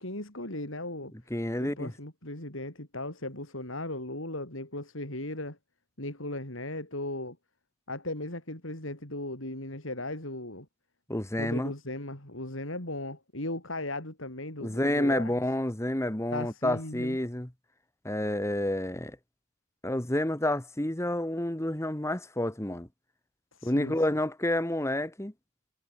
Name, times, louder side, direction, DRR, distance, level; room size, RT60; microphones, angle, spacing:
voice 1, 0.0-1.1 1.6-5.6 6.0-7.4 7.9-10.7 11.4-15.3 16.3-17.2 23.5-24.0, left 1 dB, 70° left, 6.0 m, -37 dB
voice 2, 1.3-1.9 11.1-11.7 14.6-17.5 18.0-19.2 19.8-22.9 23.6-25.3, left 1 dB, 15° left, 1.5 m, -29 dB
head